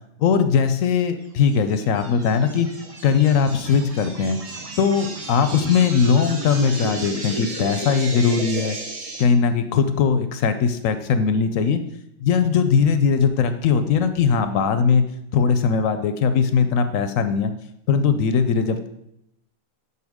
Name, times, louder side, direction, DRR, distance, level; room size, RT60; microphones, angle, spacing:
voice 1, 0.2-2.7 3.0-4.4 4.8-8.8 9.2-11.8 12.2-15.1 15.3-17.5 17.9-18.9, left 6 dB, 75° left, 10 dB, 0.9 m, -20 dB
sound 1, 1.5-9.2, right 2 dB, 30° right, 0.8 m, -33 dB
11.5 x 4.2 x 3.5 m, 0.81 s
omnidirectional pair, 1.4 m